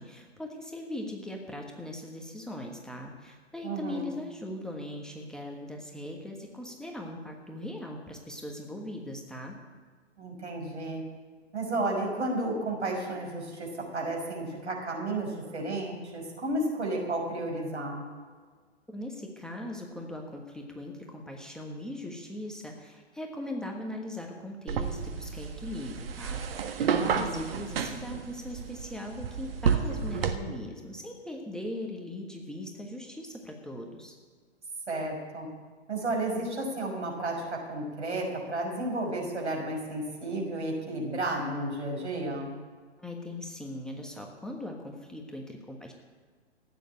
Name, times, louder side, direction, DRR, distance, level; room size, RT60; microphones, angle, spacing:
voice 1, 0.0-9.5 18.9-34.1 43.0-45.9, left 1 dB, ahead, 0 dB, 1.4 m, -40 dB
voice 2, 3.6-4.1 10.2-11.0 11.5-18.0 27.0-27.5 34.9-35.5 35.9-42.5, right 2 dB, 80° right, 0 dB, 6.1 m, -32 dB
sound 1, 24.7-30.4, right 7 dB, 55° right, 1.6 m, -31 dB
15.5 x 9.5 x 8.8 m, 1.5 s
figure-of-eight pair, 120°, 34 cm